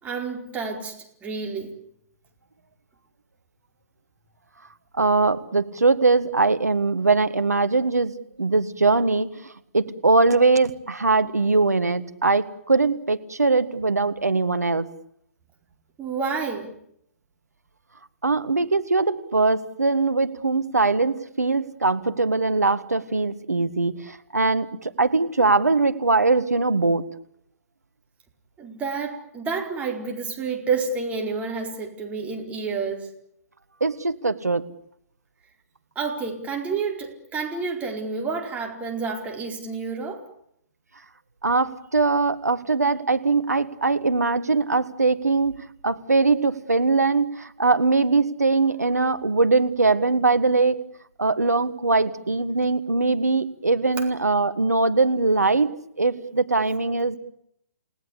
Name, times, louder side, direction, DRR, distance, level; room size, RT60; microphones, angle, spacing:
voice 1, 0.0-0.9 1.2-1.7 16.0-16.7 28.6-33.1 35.9-40.2, right 4 dB, 15° right, 1 dB, 4.7 m, -29 dB
voice 2, 4.9-14.9 18.2-27.0 33.8-34.6 41.4-50.8 51.2-55.7 56.0-57.2, right 3 dB, 85° right, 11 dB, 1.7 m, -21 dB
29.5 x 18.0 x 8.4 m, 0.72 s
figure-of-eight pair, 125°, 9 cm